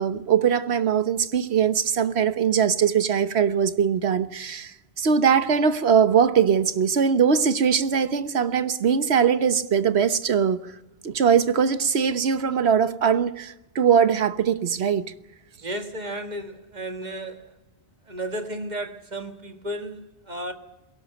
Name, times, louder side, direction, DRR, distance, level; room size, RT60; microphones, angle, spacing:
voice 1, 0.0-10.6 11.0-15.0, right 7 dB, 85° right, 1.3 m, -21 dB
voice 2, 15.6-17.6 18.1-20.5, right 1 dB, 45° right, 2.0 m, -33 dB
22.0 x 17.0 x 9.2 m
omnidirectional pair, 1.1 m